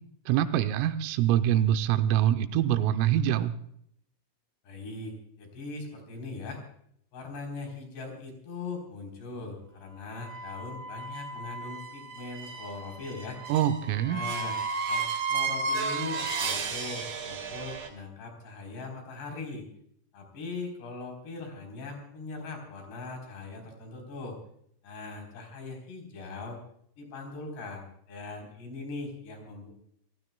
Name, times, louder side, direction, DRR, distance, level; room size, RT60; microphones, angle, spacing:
voice 1, 0.3-3.5 13.5-14.2, right 11 dB, 85° right, 9 dB, 3.3 m, -25 dB
voice 2, 4.6-6.6 7.1-13.4 14.1-14.6 14.9-19.7 20.1-24.4 24.8-26.6 27.0-29.7, left 3 dB, 55° left, 2 dB, 5.8 m, -40 dB
sound 1, 10.2-17.9, right 4 dB, 50° right, 2.8 m, -33 dB
29.0 x 16.0 x 2.3 m, 0.70 s
omnidirectional pair, 5.9 m